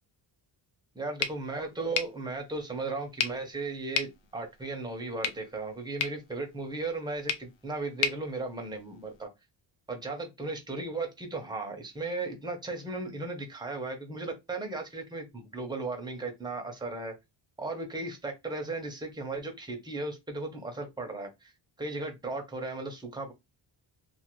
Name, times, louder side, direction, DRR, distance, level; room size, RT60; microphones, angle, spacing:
voice 1, 1.0-9.3 9.9-17.1 17.6-21.5 21.8-23.3, right 3 dB, 10° right, 0.6 m, -36 dB
sound 1, 1.2-9.2, left 7 dB, 70° left, 0.6 m, -37 dB
2.5 x 2.5 x 3.0 m
wide cardioid pair, 150°, 46 cm